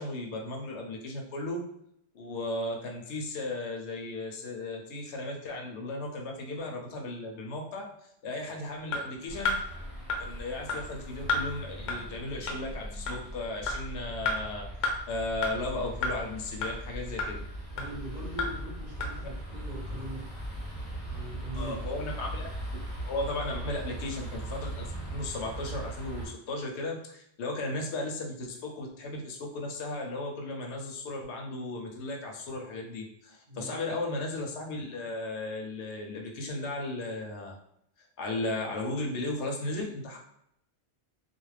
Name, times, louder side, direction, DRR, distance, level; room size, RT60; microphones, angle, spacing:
voice 1, 0.0-1.6 2.1-7.9 8.2-9.6 10.2-14.7 15.1-17.4 21.6-22.5 23.0-37.6 38.2-40.2, left 2 dB, 85° left, 1 dB, 0.9 m, -35 dB
sound 1, 8.9-9.0 9.5-9.6 10.1-10.2 10.7-10.8 11.3-11.4 11.9-12.0 12.5-12.6 13.1-13.2 13.7-13.8 14.3-14.4 14.8-14.9 15.4-15.5 16.0-16.1 16.6-16.7 17.2-17.3 17.8-17.9 18.4-18.5 19.0-19.1, left 3 dB, 55° left, 0.6 m, -28 dB
sound 2, 9.3-26.3, right 1 dB, 5° right, 0.9 m, -39 dB
voice 2, 17.7-20.3 21.0-21.8 33.5-33.7, right 1 dB, 50° right, -3 dB, 0.8 m, -41 dB
2.4 x 2.0 x 3.2 m, 0.76 s
omnidirectional pair, 1.1 m